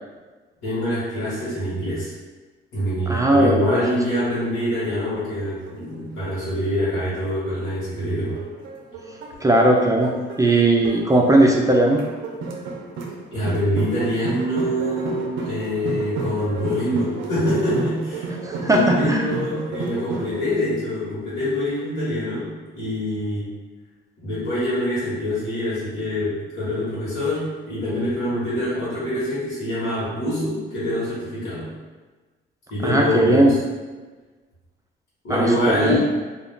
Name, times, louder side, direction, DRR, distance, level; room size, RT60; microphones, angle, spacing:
voice 1, 0.6-2.1 2.7-8.4 13.3-18.3 18.6-22.5 22.7-23.5 24.2-31.7 32.7-33.6 35.2-36.0, equal, 75° left, -11 dB, 1.3 m, -25 dB
voice 2, 3.1-3.8 9.4-10.1 10.4-12.0 18.4-19.3 32.8-33.5 35.3-36.0, right 1 dB, 15° right, 0 dB, 0.3 m, -18 dB
sound 1, 4.4-7.8 8.4-20.4, right 3 dB, 80° right, 0.5 m, -33 dB
2.4 x 2.3 x 3.5 m, 1.3 s
cardioid pair, 90°, 20 cm